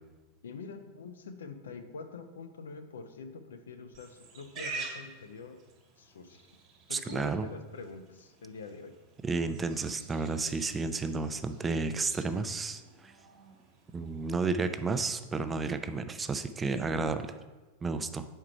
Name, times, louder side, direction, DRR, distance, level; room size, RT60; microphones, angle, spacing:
voice 1, 0.4-5.6 6.0-6.5 6.9-9.0, left 4 dB, 65° left, 8 dB, 0.5 m, -45 dB
Livestock farm animals working animals, 3.9-14.8, right 3 dB, 35° right, 1.3 m, -48 dB
voice 2, 6.9-7.4 9.2-12.8 13.9-17.3 17.8-18.3, right 4 dB, 15° right, 10 dB, 0.4 m, -31 dB
4.8 x 4.5 x 5.6 m, 1.2 s
figure-of-eight pair, 90°, 0 cm